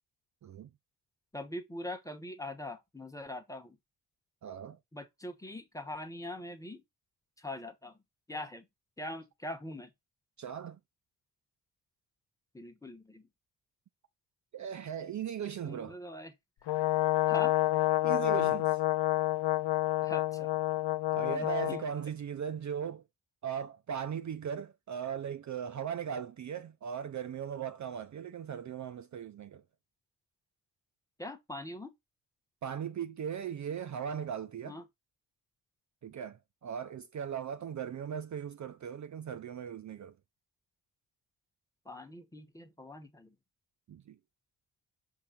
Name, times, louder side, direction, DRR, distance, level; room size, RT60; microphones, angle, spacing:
voice 1, 1.3-3.8 4.9-6.8 7.4-7.9 8.3-8.6 9.0-9.9 12.5-13.3 15.6-16.3 17.3-17.6 20.0-20.5 21.3-21.8 31.2-31.9 34.7-34.8 41.8-43.3, left 1 dB, 10° left, 1.0 m, -42 dB
voice 2, 4.4-4.8 10.4-10.8 14.5-16.0 18.0-18.8 21.1-23.0 23.4-29.6 32.6-34.8 36.0-40.1 43.9-44.2, right 8 dB, 45° right, 0.5 m, -38 dB
Brass instrument, 16.7-21.8, left 16 dB, 75° left, 0.7 m, -28 dB
6.0 x 3.8 x 4.3 m
wide cardioid pair, 130°, 42 cm